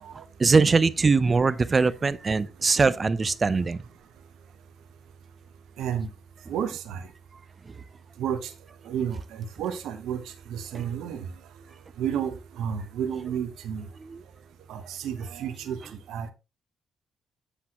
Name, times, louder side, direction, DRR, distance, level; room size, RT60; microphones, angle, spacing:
voice 1, 0.4-3.8, right 4 dB, 40° right, 0.6 m, -21 dB
voice 2, 5.8-6.1 6.5-7.0 8.2-8.5 8.8-10.2 10.5-11.3 12.0-13.9 14.7-15.8 16.1-16.3, right 8 dB, 80° right, 1.1 m, -31 dB
8.3 x 7.4 x 3.0 m
supercardioid pair, 55°, 0 cm